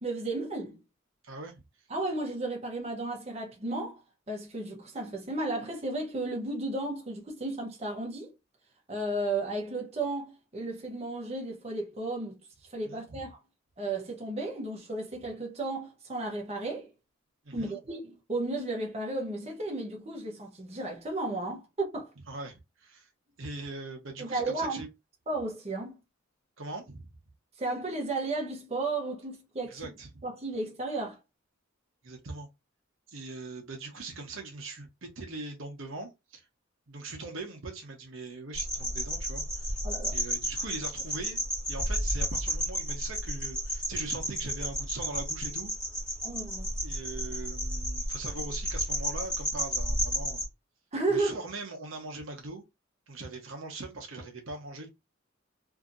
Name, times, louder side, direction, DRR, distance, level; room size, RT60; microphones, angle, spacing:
voice 1, 0.0-0.8 1.9-4.0 4.3-8.3 8.9-12.4 12.7-13.4 13.8-16.9 17.5-22.1 24.2-24.8 25.3-26.0 27.6-29.8 30.2-31.2 39.8-40.1 46.2-46.7 50.9-51.3, right 2 dB, 30° right, 0.9 m, -33 dB
voice 2, 1.2-1.5 12.8-13.3 17.4-17.8 22.3-23.1 23.4-24.9 26.6-27.1 29.7-30.2 32.0-32.5 33.1-36.5 36.9-39.8 40.1-45.7 46.8-50.4 51.1-52.6 53.1-54.9, right 3 dB, 80° right, 1.0 m, -41 dB
sound 1, 38.5-50.5, equal, 5° left, 1.2 m, -32 dB
2.8 x 2.8 x 2.5 m
head